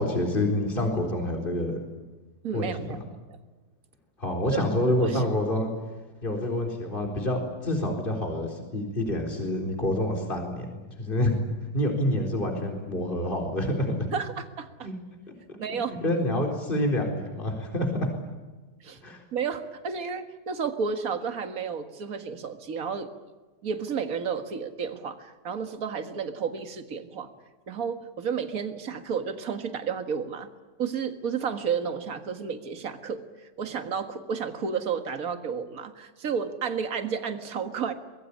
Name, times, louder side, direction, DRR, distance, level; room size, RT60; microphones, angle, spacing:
voice 1, 0.0-1.8 2.5-2.9 4.2-5.7 6.2-10.7 11.0-11.4 11.7-14.1 14.8-14.9 15.5-15.6 16.0-18.1 19.0-19.2, left 1 dB, 30° left, 2 dB, 4.3 m, -27 dB
voice 2, 2.4-3.0 4.5-5.2 14.1-14.9 15.6-15.9 18.8-19.0 19.3-23.1 23.6-27.3 27.7-30.5 30.8-37.9, right 6 dB, 55° right, 8 dB, 2.1 m, -32 dB
24.5 x 21.5 x 8.6 m, 1.3 s
omnidirectional pair, 1.8 m